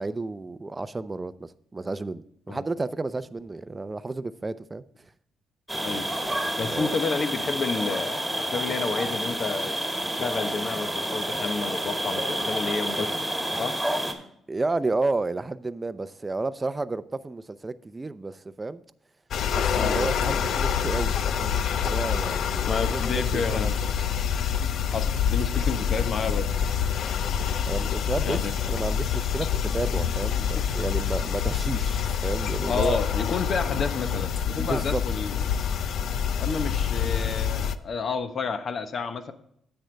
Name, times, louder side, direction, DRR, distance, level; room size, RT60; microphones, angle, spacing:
voice 1, 0.0-4.8 6.7-6.9 14.5-18.8 19.6-23.8 27.6-33.0 34.6-35.0, right 3 dB, 20° right, 13 dB, 0.5 m, -31 dB
sound 1, 5.7-14.1, right 1 dB, ahead, 1.9 m, -29 dB
voice 2, 6.6-9.8 10.1-13.1 13.6-13.8 19.7-20.0 22.6-23.8 24.9-26.5 28.2-28.5 30.5-30.6 32.7-35.4 36.4-39.3, left 4 dB, 50° left, 9 dB, 1.0 m, -30 dB
sound 2, 19.3-37.8, left 8 dB, 65° left, 0.5 m, -26 dB
10.0 x 8.0 x 3.3 m, 0.71 s
cardioid pair, 90°, 0 cm